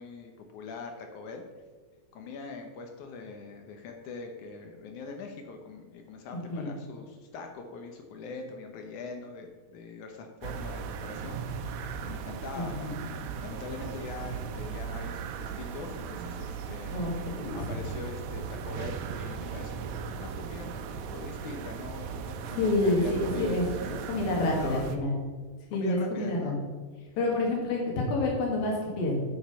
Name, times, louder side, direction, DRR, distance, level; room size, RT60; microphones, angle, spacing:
voice 1, 0.0-1.4 2.1-13.0 13.4-24.1 24.4-24.9 25.7-26.6, left 4 dB, 70° left, 4 dB, 2.1 m, -43 dB
voice 2, 6.3-6.7 12.6-12.9 16.8-17.6 22.6-25.1 25.7-26.5 27.2-29.1, left 2 dB, 85° left, -1 dB, 3.9 m, -28 dB
sound 1, 10.4-25.0, right 6 dB, 85° right, 2.5 m, -37 dB
9.2 x 7.2 x 5.6 m, 1.4 s
omnidirectional pair, 4.1 m